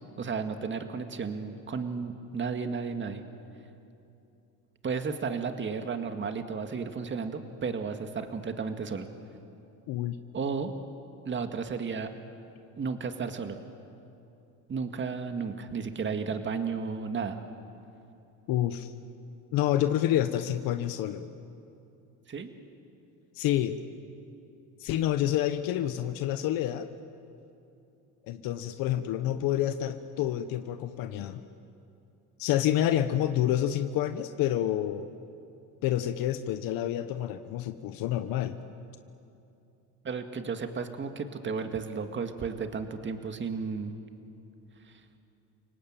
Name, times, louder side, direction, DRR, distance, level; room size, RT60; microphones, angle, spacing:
voice 1, 0.2-3.2 4.8-9.1 10.3-10.7 11.3-12.1 12.8-13.6 14.7-17.4 22.3-22.5 40.0-43.9 44.9-45.0, right 5 dB, 30° right, 7 dB, 2.0 m, -33 dB
voice 2, 18.5-18.9 19.5-21.2 23.3-23.8 24.8-26.9 28.3-31.4 32.4-35.1 35.8-38.6, left 12 dB, 70° left, 9 dB, 1.1 m, -28 dB
30.0 x 18.5 x 9.0 m, 2.8 s
supercardioid pair, 100°, 35 cm